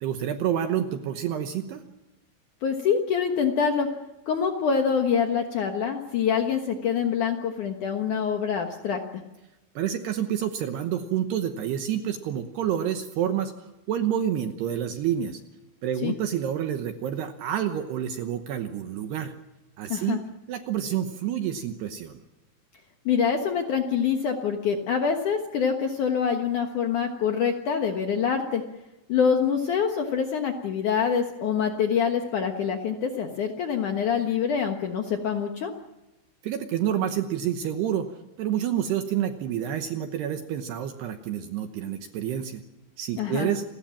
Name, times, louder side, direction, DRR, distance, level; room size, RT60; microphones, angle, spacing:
voice 1, 0.0-1.8 9.8-13.5 13.9-15.4 15.8-19.3 19.8-20.2 20.5-22.1 36.4-38.1 38.4-42.6 43.0-43.6, right 10 dB, 70° right, 7 dB, 2.6 m, -28 dB
voice 2, 2.6-3.9 4.3-9.0 16.0-16.1 19.9-20.2 23.0-28.6 29.1-35.7 43.2-43.5, left 7 dB, 90° left, 4 dB, 1.7 m, -25 dB
28.5 x 19.5 x 7.4 m, 1.0 s
omnidirectional pair, 5.8 m